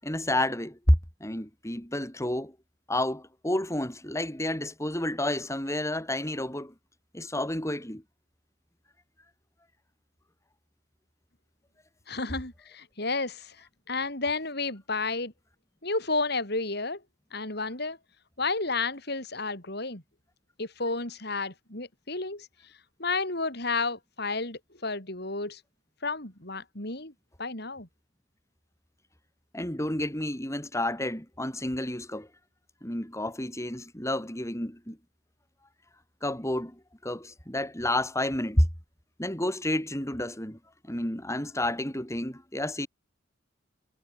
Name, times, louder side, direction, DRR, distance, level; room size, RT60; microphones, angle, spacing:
voice 1, 0.0-2.5 2.9-6.7 7.1-8.0 29.5-32.3 32.8-35.0 36.2-38.7 39.2-40.6 40.9-42.9, left 1 dB, 15° left, 7.2 m, -30 dB
voice 2, 12.1-15.3 15.8-17.0 17.3-18.0 18.4-20.0 20.6-22.5 23.0-25.6 26.0-27.1 27.4-27.9, left 3 dB, 60° left, 7.0 m, -31 dB
head